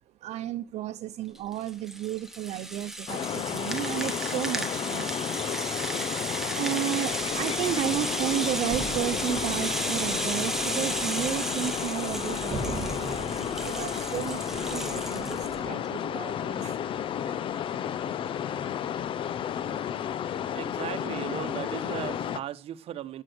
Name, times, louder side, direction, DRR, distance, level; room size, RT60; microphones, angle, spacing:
voice 1, 0.2-5.1 6.5-17.4, right 12 dB, 80° right, 0.8 m, -33 dB
Rattle (instrument), 1.4-15.6, right 1 dB, 5° right, 1.3 m, -34 dB
sound 1, 3.1-22.4, left 9 dB, 50° left, 0.7 m, -32 dB
sound 2, 7.1-15.7, right 4 dB, 25° right, 2.7 m, -42 dB
voice 2, 20.3-23.2, right 11 dB, 60° right, 1.2 m, -37 dB
15.0 x 8.3 x 6.1 m
cardioid pair, 180°, 11 cm